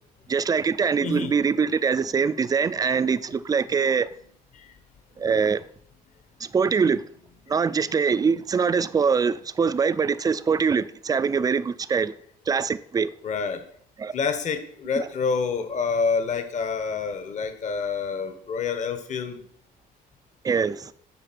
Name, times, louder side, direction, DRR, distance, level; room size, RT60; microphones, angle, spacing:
voice 1, 0.3-4.1 5.2-5.6 6.5-7.0 7.5-12.1 12.5-13.1 14.0-14.1 15.0-15.1 20.4-20.9, right 5 dB, 20° right, 0.4 m, -23 dB
voice 2, 1.0-1.3 4.5-4.7 7.7-7.8 13.2-13.6 14.1-19.5, left 5 dB, 45° left, 1.2 m, -27 dB
8.2 x 4.9 x 5.9 m
cardioid pair, 110°, 17 cm